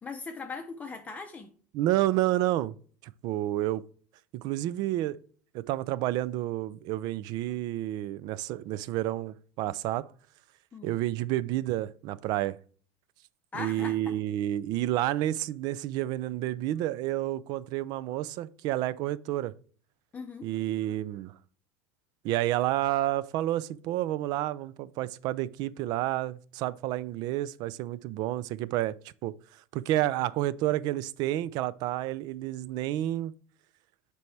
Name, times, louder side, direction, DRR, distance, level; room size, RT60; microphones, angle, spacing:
voice 1, 0.0-1.5 10.7-10.9 13.5-14.1 20.1-20.5, left 4 dB, 15° left, 0.6 m, -39 dB
voice 2, 1.7-2.7 3.0-3.8 4.3-5.2 5.5-10.1 10.8-12.6 13.6-19.5 20.4-21.3 22.2-29.3 29.7-33.3, right 14 dB, 55° right, 0.4 m, -30 dB
6.8 x 4.6 x 3.3 m
supercardioid pair, 135°, 9 cm